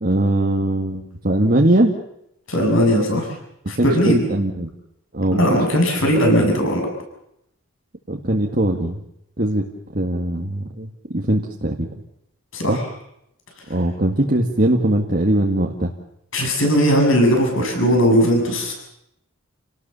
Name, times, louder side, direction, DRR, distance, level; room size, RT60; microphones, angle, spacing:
voice 1, 0.0-1.9 3.8-4.7 5.1-5.4 8.1-9.0 9.4-9.6 9.9-11.9 12.7-12.8 13.7-15.9, right 1 dB, 40° right, 0 dB, 1.9 m, -20 dB
voice 2, 2.5-3.3 3.7-4.2 5.3-6.9 12.5-12.8 16.3-18.7, equal, 65° left, 2 dB, 7.7 m, -18 dB
29.5 x 18.5 x 7.0 m, 0.78 s
head